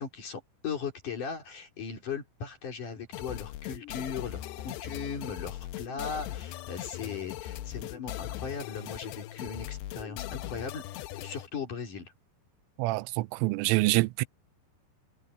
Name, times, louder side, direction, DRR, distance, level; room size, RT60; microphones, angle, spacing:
voice 1, 0.0-10.8 11.2-12.1, left 6 dB, 45° left, 4.9 m, -38 dB
sound 1, 3.1-11.5, left 14 dB, 75° left, 2.6 m, -39 dB
voice 2, 12.8-14.2, right 22 dB, 90° right, 3.1 m, -26 dB
omnidirectional pair, 5.6 m